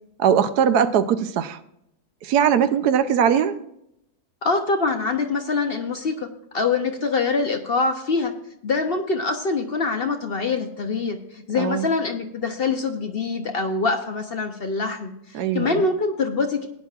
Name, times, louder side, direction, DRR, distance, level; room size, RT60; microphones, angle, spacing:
voice 1, 0.2-1.6 2.2-3.6 11.5-11.9 15.3-15.8, right 8 dB, 85° right, 11 dB, 1.2 m, -20 dB
voice 2, 4.4-8.3 8.6-16.7, left 4 dB, 50° left, 5 dB, 0.8 m, -24 dB
17.5 x 10.0 x 2.4 m, 0.79 s
omnidirectional pair, 1.6 m